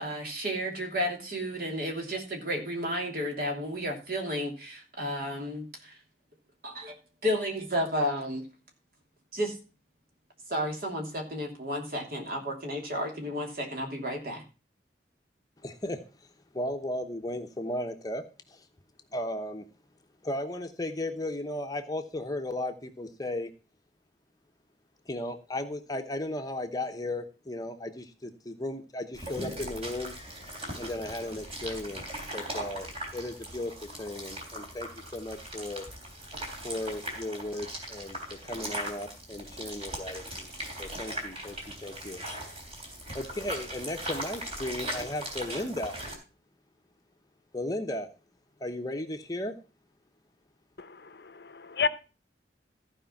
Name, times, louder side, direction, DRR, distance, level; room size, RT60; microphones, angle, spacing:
voice 1, 0.0-6.0 6.6-7.0 7.2-8.4 9.3-9.6 10.5-14.4, equal, 55° right, 2 dB, 3.0 m, -32 dB
voice 2, 15.6-16.0 16.5-18.6 19.1-19.6 20.2-23.5 25.1-30.1 30.8-32.0 32.3-32.9 33.1-35.9 36.6-40.5 40.8-41.6 41.8-42.2 43.1-46.0 47.5-48.1 48.6-49.5, left 1 dB, 20° left, 5 dB, 0.9 m, -35 dB
sound 1, 29.1-46.1, right 1 dB, 35° right, 3.3 m, -39 dB
voice 3, 50.8-51.9, left 5 dB, 65° left, 13 dB, 0.7 m, -31 dB
14.5 x 5.1 x 5.7 m, 0.32 s
head